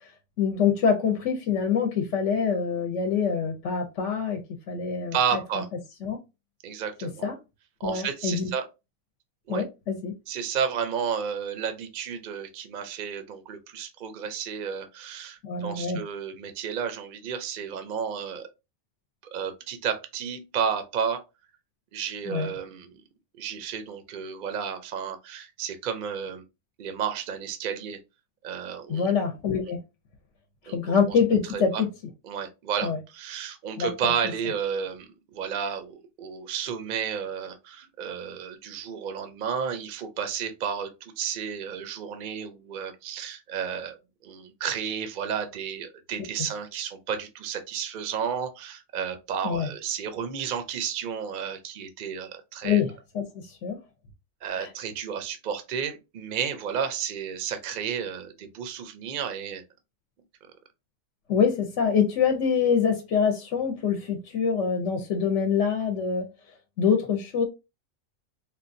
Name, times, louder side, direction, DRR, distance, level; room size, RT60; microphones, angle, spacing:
voice 1, 0.4-4.4 4.7-5.1 6.0-6.2 7.0-7.4 7.8-8.5 9.5-10.1 15.4-16.0 22.3-22.5 28.9-29.8 30.7-31.9 32.8-33.0 33.8-33.9 49.4-49.7 52.6-53.8 54.5-54.7 61.3-66.3 66.8-67.5, left 6 dB, 70° left, 0.9 m, -25 dB
voice 2, 5.1-5.7 6.6-7.3 7.8-8.6 9.5-9.6 10.3-18.5 19.2-21.2 21.9-23.0 23.4-26.4 26.8-28.0 28.4-29.1 30.7-31.2 31.5-31.8 32.2-52.8 54.4-59.6, right 7 dB, 55° right, 0.5 m, -32 dB
3.7 x 2.3 x 2.5 m
omnidirectional pair, 1.3 m